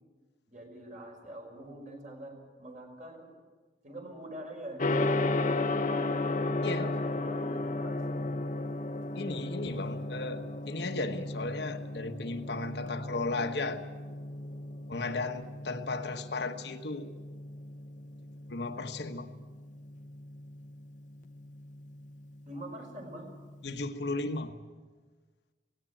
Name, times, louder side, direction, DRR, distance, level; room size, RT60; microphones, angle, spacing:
voice 1, 0.5-3.3 3.8-6.3 6.6-8.3 22.4-23.3, right 1 dB, 45° right, 2 dB, 5.1 m, -45 dB
Gong, 4.8-23.8, left 2 dB, 45° left, 0.8 m, -35 dB
voice 2, 9.1-13.8 14.9-17.1 18.5-19.3 23.6-24.5, left 3 dB, 70° left, 6 dB, 1.2 m, -35 dB
18.0 x 17.5 x 9.0 m, 1.4 s
head